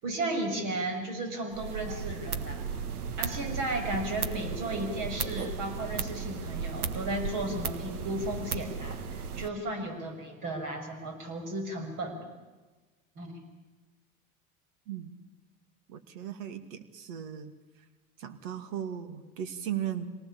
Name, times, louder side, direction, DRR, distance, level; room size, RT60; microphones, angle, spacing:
voice 1, 0.0-2.6 3.2-12.2 13.2-13.4, right 1 dB, 45° right, 5 dB, 6.8 m, -34 dB
sound 1, 1.5-9.5, right 6 dB, 85° right, 1.6 m, -35 dB
voice 2, 14.9-15.2 15.9-17.5 18.2-20.1, right 10 dB, 60° right, 9 dB, 2.6 m, -37 dB
26.0 x 19.0 x 8.7 m, 1.2 s
hypercardioid pair, 90°, 43 cm